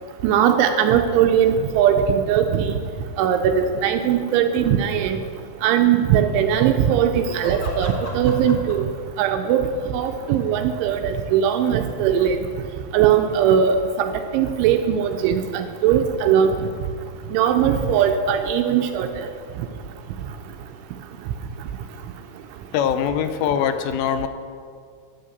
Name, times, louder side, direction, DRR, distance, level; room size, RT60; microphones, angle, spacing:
voice 1, 0.2-2.7 3.2-5.2 5.6-8.8 9.2-9.6 9.9-12.4 12.9-16.5 17.3-19.3, right 8 dB, 80° right, 6 dB, 2.8 m, -19 dB
sound 1, 2.8-2.9 7.1-9.0 10.0-11.1 11.9-12.0 12.9-13.0 17.8-20.1, left 1 dB, 35° left, 1.7 m, -37 dB
voice 2, 22.7-24.3, left 8 dB, 85° left, 9 dB, 3.1 m, -22 dB
11.0 x 6.7 x 7.8 m, 2.1 s
omnidirectional pair, 5.8 m